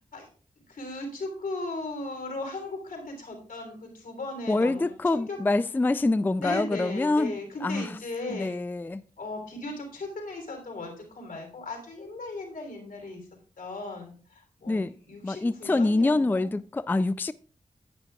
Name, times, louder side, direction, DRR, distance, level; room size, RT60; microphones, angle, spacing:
voice 1, 0.7-5.4 6.3-8.6 9.2-13.3 13.6-16.5, left 2 dB, 80° left, 3.3 m, -37 dB
voice 2, 4.5-8.0 8.3-9.0 14.7-14.9 15.2-17.3, left 2 dB, 15° left, 0.3 m, -26 dB
11.0 x 9.5 x 2.3 m
cardioid pair, 65°, 14 cm